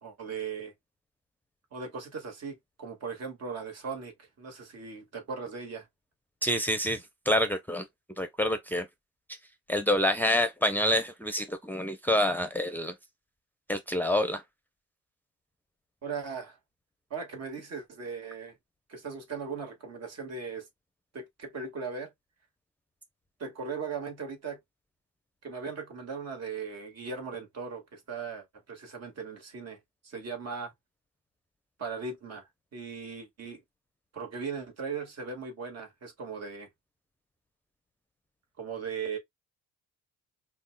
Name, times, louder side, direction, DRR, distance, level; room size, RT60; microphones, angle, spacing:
voice 1, 0.0-0.7 1.7-5.9 16.0-16.6 17.1-18.6 18.9-20.7 21.1-22.1 23.4-24.6 25.4-29.8 30.0-30.7 31.8-33.6 34.1-36.7 38.6-39.2, right 5 dB, 55° right, 1.8 m, -38 dB
voice 2, 6.4-7.9 8.2-8.9 9.7-12.9 13.7-14.4, left 1 dB, 5° left, 0.6 m, -27 dB
5.4 x 2.4 x 2.2 m
cardioid pair, 90°, 30 cm